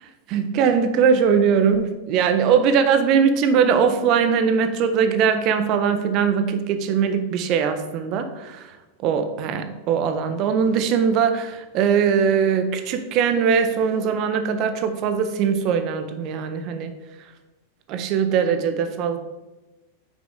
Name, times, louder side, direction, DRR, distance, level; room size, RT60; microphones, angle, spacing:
voice 1, 0.3-16.9 17.9-19.2, right 6 dB, 40° right, 8 dB, 0.6 m, -21 dB
6.2 x 5.0 x 3.7 m, 1.1 s
figure-of-eight pair, 90°, 0 cm